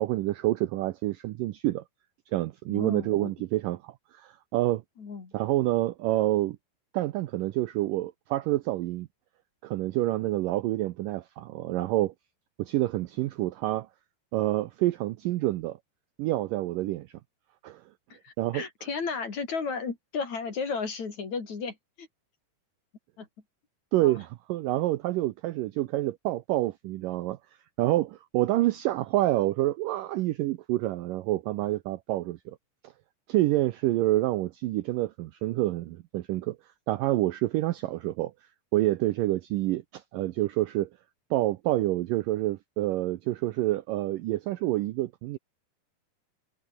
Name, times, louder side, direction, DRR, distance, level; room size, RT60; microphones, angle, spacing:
voice 1, 0.0-1.8 2.3-4.8 5.3-6.6 6.9-9.1 9.6-12.1 12.6-13.9 14.3-15.8 16.2-17.1 17.6-17.8 18.4-18.6 23.9-27.4 27.8-32.4 33.3-36.6 36.9-38.3 38.7-40.9 41.3-45.4, right 16 dB, 80° right, 2.0 m, -27 dB
voice 2, 2.7-3.3 5.0-5.3 18.1-22.1 23.2-23.3 24.0-24.1, left 5 dB, 45° left, 5.0 m, -34 dB
omnidirectional pair, 4.8 m